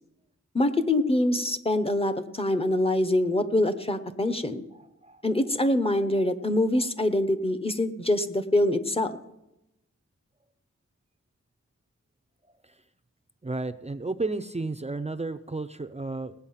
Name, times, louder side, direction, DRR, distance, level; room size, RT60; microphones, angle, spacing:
voice 1, 0.5-4.6 5.2-9.2, left 1 dB, 20° left, 9 dB, 1.0 m, -25 dB
voice 2, 4.7-5.5 6.1-6.2 6.7-6.8 13.4-16.3, right 3 dB, 20° right, 9 dB, 0.6 m, -33 dB
18.0 x 8.5 x 5.7 m, 0.89 s
wide cardioid pair, 80°, 29 cm